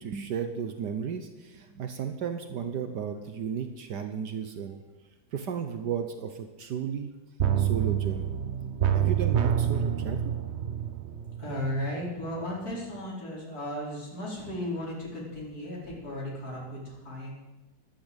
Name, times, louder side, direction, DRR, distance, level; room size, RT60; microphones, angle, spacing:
voice 1, 0.0-4.8 5.3-7.1 7.6-8.3 8.9-10.3, right 7 dB, 70° right, 8 dB, 1.6 m, -34 dB
sound 1, 7.4-12.1 12.4-12.5, right 9 dB, 50° right, 0.9 m, -27 dB
voice 2, 11.4-17.3, left 1 dB, 55° left, -5 dB, 5.5 m, -35 dB
13.0 x 13.0 x 8.1 m, 1.1 s
omnidirectional pair, 1.9 m